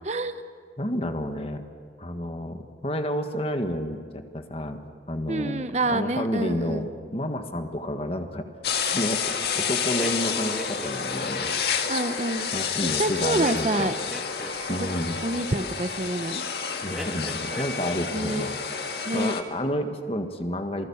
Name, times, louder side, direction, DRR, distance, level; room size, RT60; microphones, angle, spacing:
voice 1, 0.0-0.4 5.3-6.9 11.9-12.5 13.0-13.9 14.8-14.9 15.2-16.4 18.1-18.5 19.0-19.3, right 2 dB, 40° right, 10 dB, 0.8 m, -27 dB
voice 2, 0.8-1.6 2.0-8.5 8.8-11.5 12.5-13.9 14.7-15.2 16.8-18.5 19.1-20.9, left 1 dB, 35° left, 7 dB, 1.6 m, -30 dB
sound 1, 8.6-19.4, left 6 dB, 65° left, 1.8 m, -29 dB
sound 2, 9.9-11.8 13.4-15.2 16.9-18.0 18.2-18.8, equal, ahead, 2.7 m, -38 dB
27.5 x 19.5 x 7.1 m, 2.2 s
head